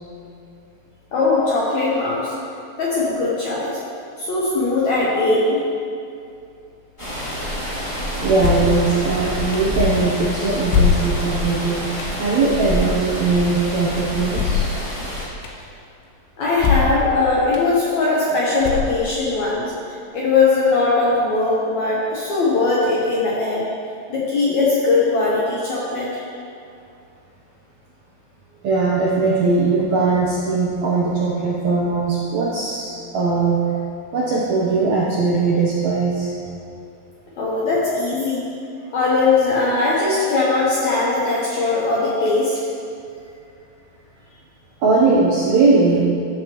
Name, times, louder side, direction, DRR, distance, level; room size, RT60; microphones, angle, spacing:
voice 1, 1.1-2.3 2.8-3.8 4.2-5.6 16.4-19.7 20.1-23.7 24.1-26.2 37.4-38.5 38.9-42.6, left 3 dB, 70° left, -6 dB, 1.8 m, -20 dB
sound 1, 7.0-15.2, equal, 15° left, 1.0 m, -27 dB
voice 2, 8.2-14.6 28.6-33.6 34.1-36.3 44.8-46.0, right 3 dB, 75° right, -5 dB, 1.6 m, -19 dB
sound 2, 8.4-8.8 9.5-9.6 10.7-11.4 12.0-12.1 14.3-14.8 15.4-15.5 16.6-17.1 17.5-17.6 18.6-19.2, left 7 dB, 85° left, 2.9 m, -20 dB
14.0 x 7.2 x 3.0 m, 2.5 s
omnidirectional pair, 4.5 m